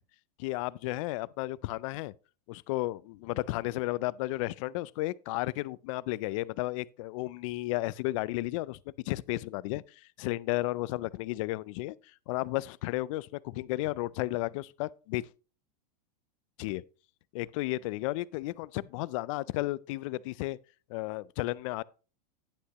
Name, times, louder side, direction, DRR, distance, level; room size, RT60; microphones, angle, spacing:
voice 1, 0.4-2.1 2.5-8.8 9.0-11.9 12.3-15.2 16.6-16.8 17.3-20.6 20.9-21.8, left 19 dB, 50° left, 0.4 m, -33 dB
10.0 x 8.4 x 2.9 m
supercardioid pair, 150°, 21 cm